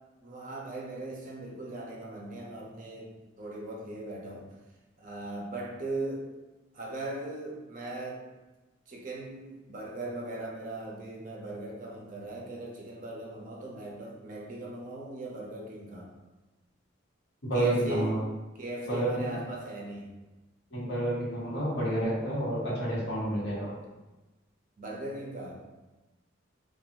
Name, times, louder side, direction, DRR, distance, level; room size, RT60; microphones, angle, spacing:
voice 1, 0.2-4.5 5.0-6.3 6.7-8.2 8.9-16.1 17.5-18.1 18.6-20.1 23.7-23.9 24.8-25.6, right 2 dB, 40° right, -2 dB, 0.5 m, -39 dB
voice 2, 17.5-18.2 18.9-19.4 20.7-23.7, right 1 dB, 60° left, -7 dB, 1.0 m, -29 dB
2.5 x 2.2 x 2.8 m, 1.1 s
head